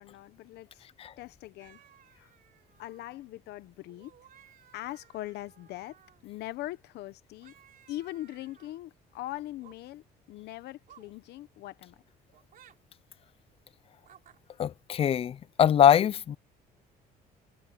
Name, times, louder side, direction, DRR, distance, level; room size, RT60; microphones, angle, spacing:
voice 1, 0.0-0.9 1.2-1.8 2.1-2.3 2.8-4.1 4.7-6.0 6.2-7.5 7.9-12.0, left 15 dB, 80° left, 0.9 m, -41 dB
sound 1, 1.6-3.2 3.9-6.3 7.4-8.8 9.4-9.8 10.9-11.1 12.3-12.8 14.0-14.4, right 10 dB, 55° right, 3.8 m, -59 dB
voice 2, 14.6-16.4, left 9 dB, 35° left, 0.4 m, -23 dB
cardioid pair, 110°, 17 cm